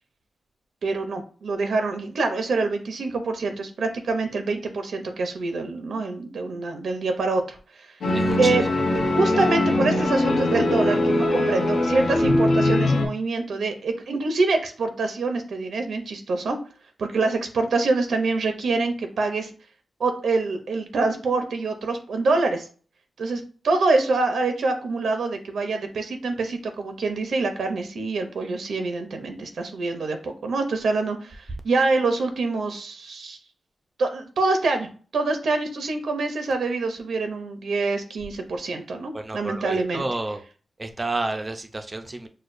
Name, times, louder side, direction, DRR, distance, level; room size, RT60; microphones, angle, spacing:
voice 1, 0.8-7.9 8.4-8.6 9.1-16.6 17.0-19.5 20.0-22.7 23.2-33.4 34.0-34.9 35.1-40.0, right 3 dB, 75° right, 6 dB, 0.6 m, -25 dB
sound 1, 8.0-13.1, left 1 dB, 65° left, 0.9 m, -21 dB
voice 2, 8.1-8.6 39.1-40.4 40.8-42.3, right 2 dB, 20° right, 7 dB, 0.4 m, -30 dB
6.4 x 2.2 x 2.5 m, 0.40 s
wide cardioid pair, 170°, 0 cm